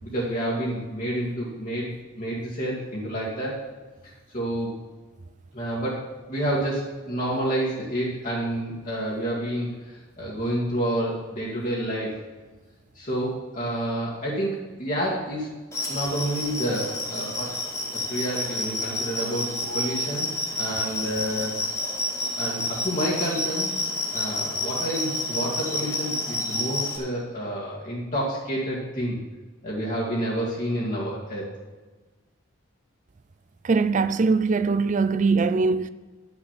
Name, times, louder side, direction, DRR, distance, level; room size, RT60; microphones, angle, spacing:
voice 1, 0.0-1.9 2.2-3.6 4.0-4.8 5.5-12.2 12.9-15.5 15.9-17.5 18.1-19.5 19.7-20.3 20.6-21.6 22.4-23.7 24.1-29.2 29.6-31.4, right 1 dB, 40° left, 2.1 m, -29 dB
sound 1, 15.7-27.0, left 1 dB, 15° left, 2.2 m, -29 dB
voice 2, 33.6-35.9, right 4 dB, 35° right, 0.4 m, -21 dB
11.0 x 6.1 x 7.5 m
head